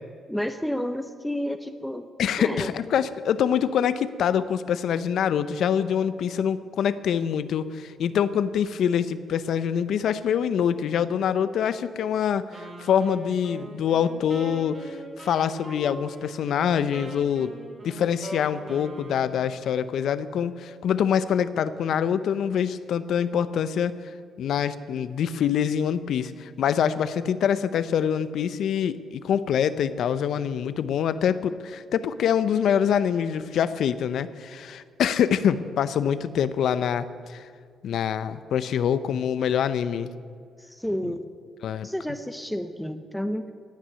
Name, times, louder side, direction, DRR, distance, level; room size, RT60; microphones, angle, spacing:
voice 1, 0.3-2.1 2.4-2.7 40.6-41.3 41.8-43.5, equal, 5° left, 9 dB, 0.7 m, -30 dB
voice 2, 2.2-12.4 12.8-17.5 17.8-23.9 24.4-37.5 37.8-40.1 41.0-41.1 41.6-41.9, left 8 dB, 70° left, 14 dB, 0.6 m, -25 dB
Wind instrument woodwind instrument, 12.5-19.7, right 2 dB, 35° right, 3.5 m, -42 dB
17.0 x 6.2 x 9.4 m, 2.1 s
cardioid pair, 90°, 0 cm